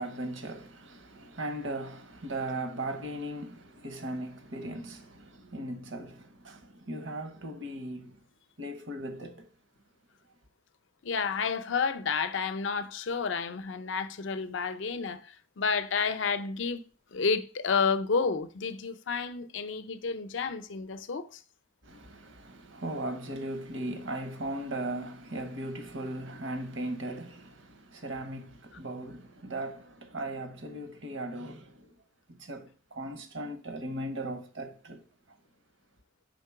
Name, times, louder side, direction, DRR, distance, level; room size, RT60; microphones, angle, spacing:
voice 1, 0.0-8.2 8.6-9.5 21.8-31.9 32.3-35.0, right 1 dB, 65° right, 0.9 m, -38 dB
voice 2, 11.0-16.8 17.1-21.4, left 5 dB, 70° left, 0.5 m, -30 dB
5.1 x 3.7 x 5.8 m
head